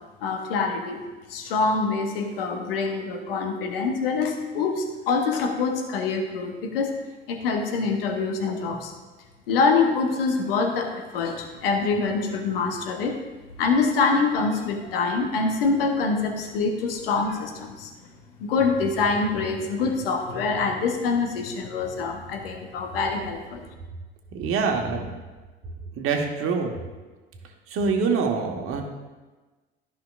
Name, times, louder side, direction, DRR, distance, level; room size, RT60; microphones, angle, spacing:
voice 1, 0.2-1.0 1.3-6.9 7.3-8.9 9.5-13.2 13.6-17.9 18.4-23.7, left 4 dB, 70° left, 4 dB, 1.2 m, -25 dB
voice 2, 24.3-25.1 25.9-26.7 27.7-28.8, right 5 dB, 45° right, 3 dB, 1.5 m, -25 dB
13.5 x 5.7 x 2.5 m, 1.2 s
figure-of-eight pair, 60°, 30 cm